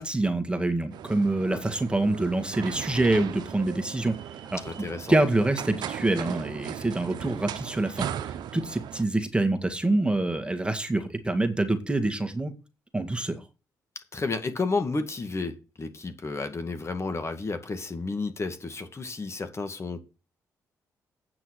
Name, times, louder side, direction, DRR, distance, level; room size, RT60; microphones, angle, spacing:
voice 1, 0.0-12.5 12.9-13.4, right 2 dB, 15° right, 2.0 m, -26 dB
sound 1, 0.9-9.0, right 10 dB, 80° right, 0.8 m, -37 dB
voice 2, 4.6-5.1 14.0-20.0, left 3 dB, 40° left, 2.0 m, -32 dB
8.9 x 6.0 x 6.5 m
supercardioid pair, 55°, 7 cm